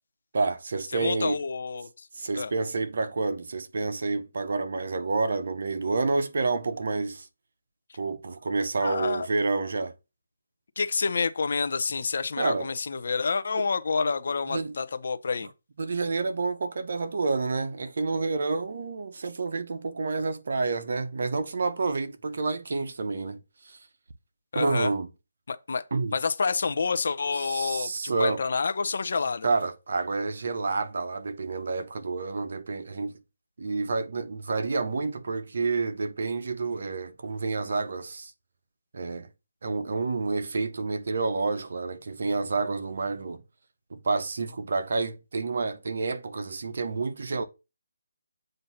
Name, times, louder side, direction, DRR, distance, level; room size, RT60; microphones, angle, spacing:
voice 1, 0.3-1.4 2.1-7.3 8.0-9.9 12.4-12.7 13.6-13.7 14.5-14.8 15.8-23.8 24.5-25.1 25.9-26.1 27.3-28.4 29.4-33.2 33.6-38.3 38.9-39.3 39.6-43.4 43.9-47.4, right 3 dB, 60° right, 0.9 m, -29 dB
voice 2, 0.9-2.1 2.4-2.5 8.8-9.3 10.8-15.5 24.5-24.9 25.5-25.8 26.1-29.5, left 4 dB, 60° left, 0.7 m, -28 dB
7.8 x 2.7 x 5.7 m
figure-of-eight pair, 160°, 0 cm